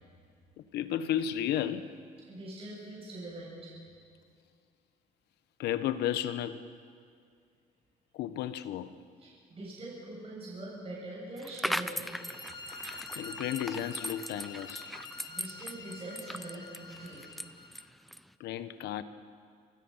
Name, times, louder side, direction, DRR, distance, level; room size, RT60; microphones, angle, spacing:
voice 1, 0.7-2.0 5.6-6.6 8.1-8.9 13.2-14.9 18.4-19.0, left 10 dB, 80° left, 12 dB, 1.3 m, -33 dB
voice 2, 2.3-3.7 9.2-12.1 12.3-12.4 15.3-17.2, right 1 dB, 35° right, -5 dB, 7.7 m, -43 dB
sound 1, 11.4-18.3, equal, ahead, 0.7 m, -39 dB
sound 2, 12.0-17.9, left 3 dB, 25° left, 1.8 m, -47 dB
27.5 x 25.0 x 5.8 m, 2.2 s
cardioid pair, 110°, 17 cm